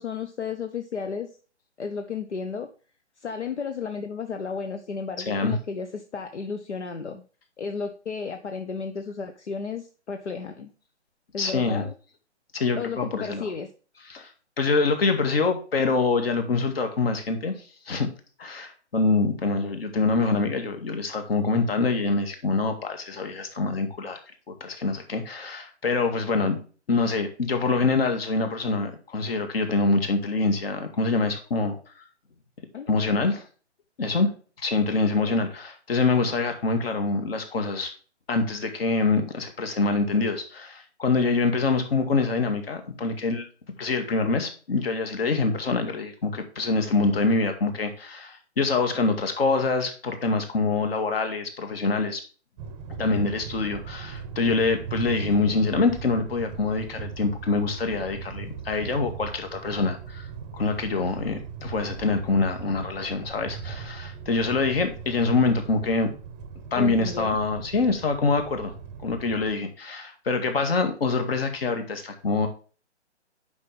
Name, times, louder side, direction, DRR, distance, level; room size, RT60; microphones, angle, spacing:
voice 1, 0.0-1.4 1.8-2.7 3.2-7.2 7.6-10.7 11.3-11.9 12.7-13.7 32.7-32.9 66.8-67.4, left 5 dB, 75° left, 7 dB, 1.1 m, -33 dB
voice 2, 5.3-5.6 11.4-11.8 12.5-13.4 14.1-14.3 14.6-17.5 17.9-18.1 18.4-24.2 24.5-26.6 26.9-31.8 32.9-33.4 34.0-37.9 38.3-43.5 43.8-52.2 53.0-60.3 60.5-66.1 66.7-68.7 69.0-72.5, left 3 dB, 55° left, 7 dB, 2.2 m, -25 dB
sound 1, 52.6-69.5, right 6 dB, 15° right, 0.8 m, -39 dB
9.6 x 5.7 x 3.4 m, 0.38 s
figure-of-eight pair, 145°, 35 cm